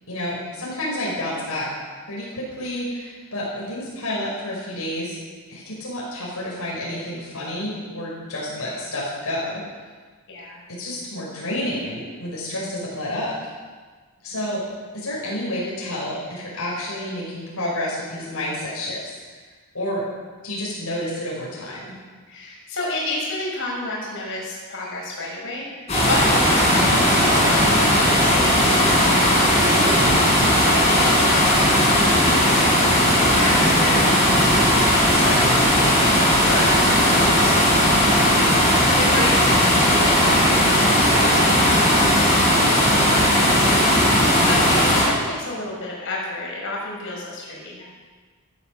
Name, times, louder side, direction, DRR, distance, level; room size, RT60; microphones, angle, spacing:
voice 1, 0.1-1.7 2.1-5.2 5.5-9.6 10.7-13.5 14.2-14.6 14.9-19.4 19.7-20.0 20.4-21.9 42.5-42.7 44.0-44.3, left 1 dB, 80° left, -5 dB, 5.5 m, -30 dB
voice 2, 10.3-10.6 14.3-14.4 22.3-29.6 30.6-37.8 38.8-43.8 44.2-47.8, left 2 dB, 60° left, -3 dB, 5.8 m, -31 dB
sound 1, 25.9-45.0, equal, 30° left, 6.2 m, -17 dB
15.0 x 13.5 x 6.8 m, 1.5 s
head